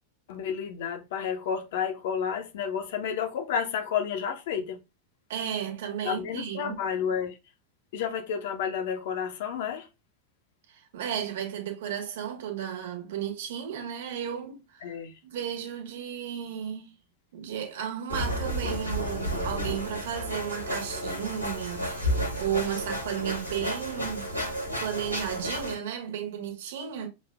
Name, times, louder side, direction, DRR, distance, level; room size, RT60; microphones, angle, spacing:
voice 1, 0.3-4.8 6.0-7.4 7.9-9.9 14.8-15.1, left 7 dB, 55° left, 0.8 m, -31 dB
voice 2, 5.3-6.8 10.7-14.9 15.2-16.9 17.3-24.3 24.8-27.1, right 9 dB, 55° right, 1.3 m, -34 dB
sound 1, 18.1-25.7, equal, 85° right, 1.5 m, -32 dB
6.0 x 2.5 x 2.4 m
figure-of-eight pair, 90°, 0 cm